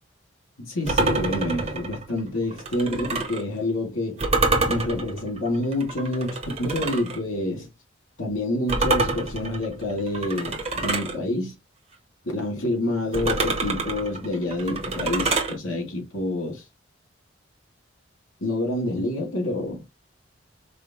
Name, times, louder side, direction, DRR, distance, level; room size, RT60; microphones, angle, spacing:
voice 1, 0.6-4.2 4.7-7.7 8.2-11.6 12.2-16.6 18.4-19.8, left 1 dB, 90° left, 2.4 m, -27 dB
sound 1, 0.9-3.4 4.2-7.2 8.7-11.2 13.1-15.5, right 3 dB, 30° right, 1.0 m, -26 dB
4.9 x 2.2 x 2.9 m
head